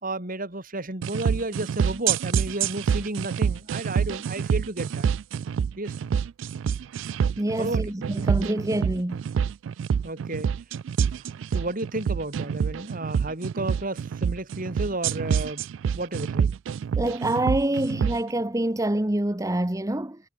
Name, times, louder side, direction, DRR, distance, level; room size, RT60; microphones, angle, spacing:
voice 1, 0.0-5.1 5.8-5.9 7.6-8.1 10.0-10.5 11.5-15.7 15.9-16.5, right 2 dB, 45° right, 3.0 m, -32 dB
sound 1, 1.0-18.2, right 7 dB, 65° right, 0.3 m, -26 dB
voice 2, 7.4-9.2 16.9-20.2, right 1 dB, 15° right, 1.0 m, -26 dB
head